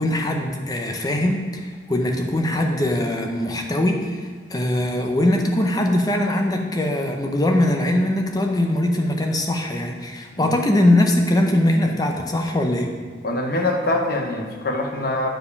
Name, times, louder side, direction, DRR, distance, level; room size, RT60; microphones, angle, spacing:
voice 1, 0.0-12.9, left 1 dB, 20° left, 3 dB, 0.7 m, -21 dB
voice 2, 13.2-15.3, left 2 dB, 50° left, 2 dB, 1.0 m, -24 dB
9.0 x 4.8 x 5.3 m, 1.5 s
head